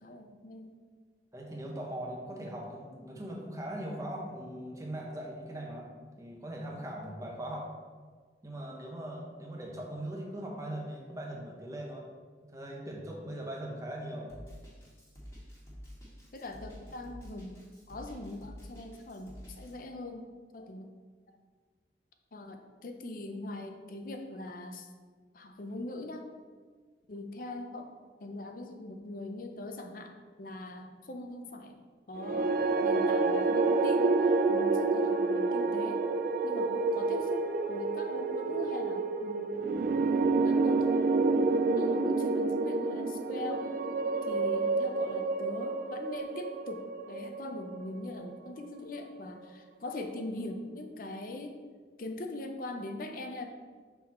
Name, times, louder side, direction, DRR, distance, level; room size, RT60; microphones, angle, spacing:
voice 1, 0.0-0.7 16.3-20.3 20.5-20.9 22.3-24.9 25.3-26.2 27.1-27.9 28.2-30.1 30.4-31.8 32.1-36.0 36.4-39.8 40.4-40.9 41.3-41.5 41.8-43.7 44.3-51.6 52.0-53.5, left 2 dB, 50° left, 5 dB, 0.6 m, -41 dB
voice 2, 1.3-5.9 6.2-7.7 8.4-12.0 12.5-14.3, right 1 dB, 20° right, -1 dB, 0.9 m, -40 dB
Drum kit, 14.3-19.7, equal, 15° left, 1.7 m, -48 dB
sound 1, 32.2-48.5, right 3 dB, 50° right, 0.3 m, -29 dB
5.7 x 4.0 x 4.2 m, 1.5 s
head